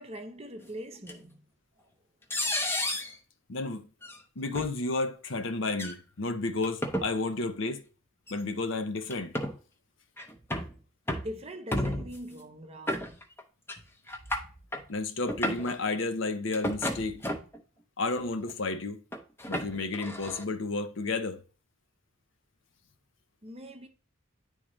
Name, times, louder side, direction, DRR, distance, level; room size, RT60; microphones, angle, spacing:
voice 1, 0.0-1.4 1.8-1.9 11.2-13.1 23.4-23.9, equal, 30° right, 0.7 m, -42 dB
sound 1, 1.1-1.2 2.3-3.1 4.0-4.2 4.5-4.7 5.7-6.0 6.6-7.1 8.3-8.4 9.1-9.6 10.2-10.7 11.1-11.3 11.7-12.2 12.9-13.4 13.7-13.8 14.1-14.8 15.2-15.7 16.5-17.6 18.2-18.5 19.1-20.4, left 1 dB, 10° left, 0.7 m, -32 dB
voice 2, 3.5-3.9 4.4-7.8 8.3-9.4 14.9-17.2 18.0-19.0 19.5-21.4, left 3 dB, 65° left, 0.7 m, -32 dB
9.9 x 3.7 x 3.1 m
head